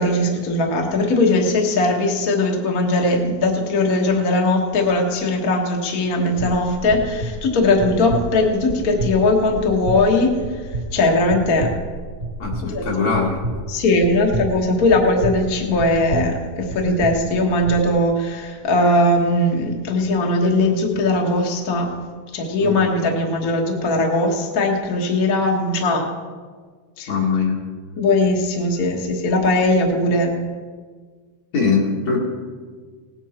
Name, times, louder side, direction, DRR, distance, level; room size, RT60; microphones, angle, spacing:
voice 1, 0.0-11.7 12.6-13.1 13.7-21.9 22.3-26.1 27.0-27.1 28.0-30.4, left 2 dB, 40° left, 1 dB, 1.5 m, -19 dB
sound 1, 6.4-17.8, right 2 dB, 55° right, 1.9 m, -30 dB
voice 2, 12.4-13.4 22.6-22.8 27.1-27.6 31.5-32.2, left 5 dB, 65° left, -4 dB, 3.0 m, -21 dB
18.5 x 9.2 x 4.4 m, 1.5 s
omnidirectional pair, 3.5 m